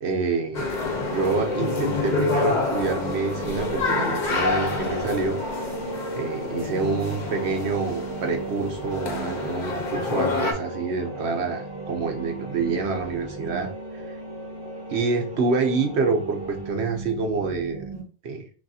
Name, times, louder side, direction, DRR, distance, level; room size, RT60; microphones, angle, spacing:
voice 1, 0.0-0.7 1.0-5.4 6.1-13.7 14.9-17.9 18.2-18.4, right 4 dB, 85° right, 4 dB, 1.1 m, -27 dB
sound 1, 0.5-10.5, left 3 dB, 50° left, 0.9 m, -28 dB
sound 2, 0.6-18.0, right 2 dB, 35° right, 0.9 m, -39 dB
sound 3, 1.1-16.7, right 2 dB, 5° right, 2.3 m, -37 dB
6.0 x 2.7 x 2.7 m, 0.39 s
omnidirectional pair, 1.1 m